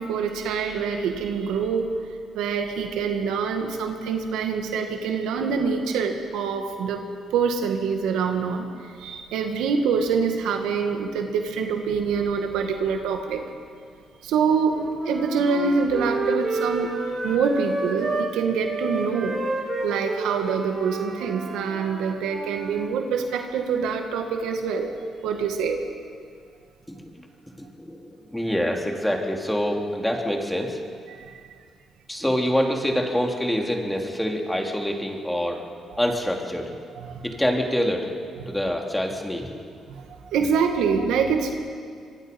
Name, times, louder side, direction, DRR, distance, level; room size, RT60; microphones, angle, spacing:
voice 1, 0.0-1.9 2.3-7.0 7.3-13.5 14.2-19.4 19.8-24.9 25.2-25.8 31.2-31.4 37.0-37.2 39.9-40.0 40.3-41.5, right 5 dB, 90° right, 4 dB, 2.1 m, -25 dB
Wind instrument woodwind instrument, 14.4-18.3 18.6-22.9, right 2 dB, 40° right, 3.0 m, -30 dB
voice 2, 26.9-27.3 27.6-30.8 32.1-35.7 36.0-36.7 37.2-38.1 38.5-39.7, equal, 5° left, 1 dB, 3.3 m, -26 dB
25.5 x 23.0 x 5.5 m, 2.2 s
cardioid pair, 90°, 0 cm